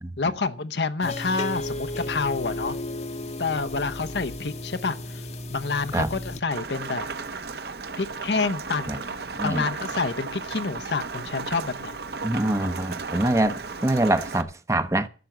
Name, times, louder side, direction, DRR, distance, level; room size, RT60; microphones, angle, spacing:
voice 1, 0.2-2.8 3.4-5.2 5.5-7.1 8.0-9.2 9.4-12.0, left 4 dB, 70° left, 0.9 m, -28 dB
sound 1, 1.0-6.4, left 1 dB, 35° left, 1.0 m, -34 dB
Rain, 6.5-14.4, right 4 dB, 60° right, 1.0 m, -34 dB
voice 2, 12.2-15.1, right 1 dB, 15° right, 0.7 m, -24 dB
12.0 x 7.1 x 7.8 m
head